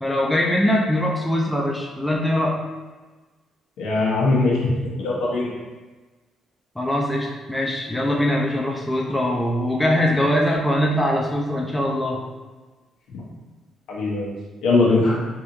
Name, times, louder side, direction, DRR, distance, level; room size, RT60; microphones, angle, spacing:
voice 1, 0.0-2.6 6.8-12.2, left 1 dB, 10° left, -2 dB, 0.5 m, -22 dB
voice 2, 3.8-5.5 13.1-13.2 13.9-14.3 14.6-15.2, left 3 dB, 85° left, -4 dB, 0.9 m, -21 dB
3.5 x 2.5 x 3.0 m, 1.3 s
cardioid pair, 90°, 0 cm